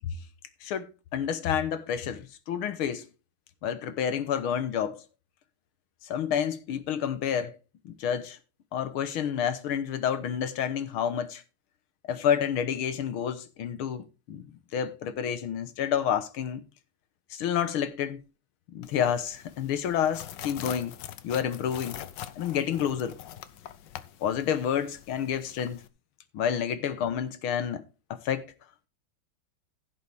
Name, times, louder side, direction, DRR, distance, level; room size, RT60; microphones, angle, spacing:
voice 1, 0.6-3.1 3.6-5.0 6.0-7.6 7.9-8.4 8.7-11.4 12.0-14.4 14.7-16.6 17.3-18.2 18.7-20.9 21.2-22.0 22.4-23.2 24.2-25.8 26.3-27.8 28.1-28.5, left 8 dB, 80° left, 1.9 m, -29 dB
sound 1, 18.8-25.9, left 11 dB, 65° left, 1.3 m, -44 dB
15.5 x 6.9 x 3.4 m
omnidirectional pair, 2.3 m